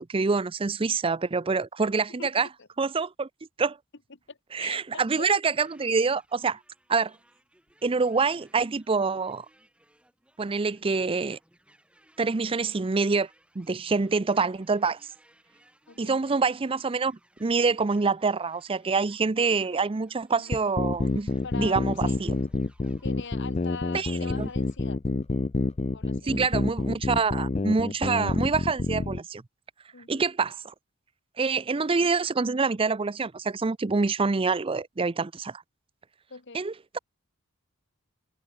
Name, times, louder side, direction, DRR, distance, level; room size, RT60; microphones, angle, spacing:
voice 1, 0.0-2.5 2.8-3.3 3.6-3.8 4.5-6.6 6.9-7.1 7.8-9.5 10.4-11.4 12.2-13.3 13.6-15.0 16.0-21.3 21.6-22.4 23.9-24.1 24.4-24.5 26.2-29.4 30.1-30.7 31.4-35.6 36.5-37.0, right 4 dB, 25° right, 0.5 m, -26 dB
voice 2, 2.2-2.7 4.1-5.3 15.9-16.2 20.3-20.6 21.4-22.2 23.0-25.0 25.9-26.4 29.9-30.3 36.3-36.7, left 4 dB, 55° left, 1.4 m, -42 dB
sound 1, 5.5-24.8, right 1 dB, 5° right, 6.0 m, -63 dB
sound 2, 20.5-29.2, left 3 dB, 30° left, 0.4 m, -28 dB
head